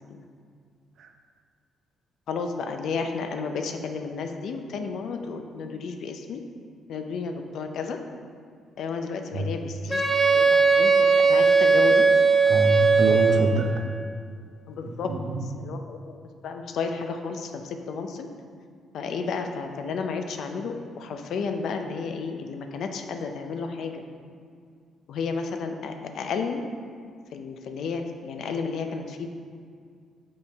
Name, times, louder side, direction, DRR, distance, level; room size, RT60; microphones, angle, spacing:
voice 1, 2.3-6.4 6.9-8.0 8.8-12.1 14.7-15.1 15.6-16.2 16.4-18.3 18.9-24.0 25.1-26.6 27.3-29.3, left 5 dB, 70° left, 5 dB, 0.6 m, -32 dB
Wind instrument woodwind instrument, 9.9-13.6, right 4 dB, ahead, 1.3 m, -19 dB
voice 2, 12.4-13.7 14.9-15.5, right 1 dB, 70° right, 3 dB, 0.7 m, -26 dB
6.6 x 5.3 x 3.5 m, 2.2 s
cardioid pair, 90°, 0 cm